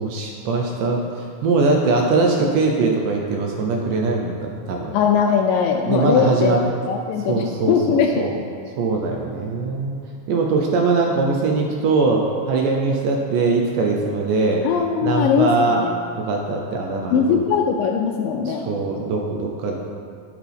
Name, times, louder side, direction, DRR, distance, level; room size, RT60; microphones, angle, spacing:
voice 1, 0.0-4.9 5.9-6.6 7.3-8.3 8.8-10.0 10.3-14.7 15.0-15.8 16.2-17.4 18.5-19.8, right 3 dB, 75° right, 0 dB, 2.1 m, -21 dB
voice 2, 4.9-6.6 6.9-8.1 14.6-15.9 17.1-18.7, left 6 dB, 80° left, 3 dB, 2.0 m, -20 dB
11.5 x 7.4 x 3.5 m, 2.3 s
omnidirectional pair, 4.3 m